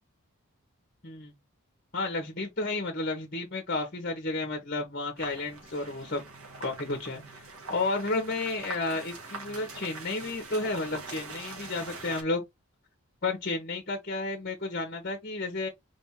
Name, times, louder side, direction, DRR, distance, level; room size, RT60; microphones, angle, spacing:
voice 1, 1.9-6.2 6.6-7.2 7.7-12.4 13.2-15.7, left 3 dB, 40° left, 1.2 m, -32 dB
sound 1, 5.2-12.2, right 3 dB, 75° right, 1.9 m, -43 dB
4.9 x 3.5 x 3.0 m
head